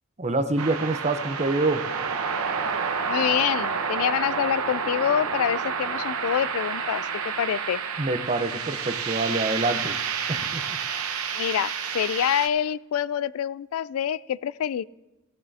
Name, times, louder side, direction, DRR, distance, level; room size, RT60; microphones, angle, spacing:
voice 1, 0.2-1.9 8.0-10.0 10.3-10.8, right 2 dB, 30° right, 10 dB, 0.7 m, -26 dB
sound 1, 0.6-12.5, right 6 dB, 80° right, 0.9 m, -29 dB
voice 2, 3.1-7.8 11.3-14.8, left 9 dB, 75° left, 18 dB, 0.3 m, -26 dB
17.5 x 13.5 x 2.7 m, 0.99 s
head